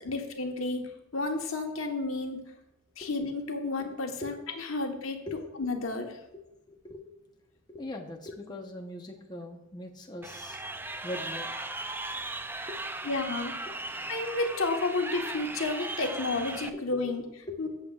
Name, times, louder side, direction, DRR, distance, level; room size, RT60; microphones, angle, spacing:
voice 1, 0.0-2.4 3.0-5.2 5.6-6.2 13.0-13.5 14.1-17.2 17.6-17.7, left 3 dB, 80° left, 3 dB, 1.3 m, -31 dB
voice 2, 6.7-7.0 7.7-10.6 11.0-11.5 12.6-12.8 17.5-17.6, left 1 dB, 20° left, 1 dB, 0.9 m, -40 dB
Crowd, 10.2-16.7, right 2 dB, 10° right, 0.4 m, -37 dB
15.0 x 7.0 x 2.4 m, 0.91 s
head